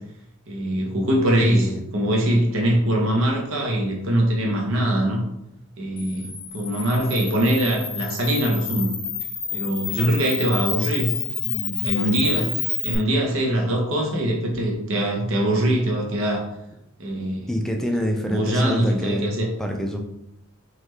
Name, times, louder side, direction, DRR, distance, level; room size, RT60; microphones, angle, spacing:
voice 1, 0.5-5.2 5.8-6.3 6.5-8.9 9.5-11.1 11.4-12.5 12.8-16.4 17.0-17.5 18.3-19.5, right 1 dB, 65° right, 0 dB, 0.8 m, -22 dB
voice 2, 1.3-1.8 17.5-19.3 19.6-20.0, equal, ahead, 2 dB, 0.4 m, -25 dB
Camera, 6.0-13.0, left 7 dB, 40° left, 0.8 m, -29 dB
3.9 x 3.1 x 3.1 m, 0.83 s
head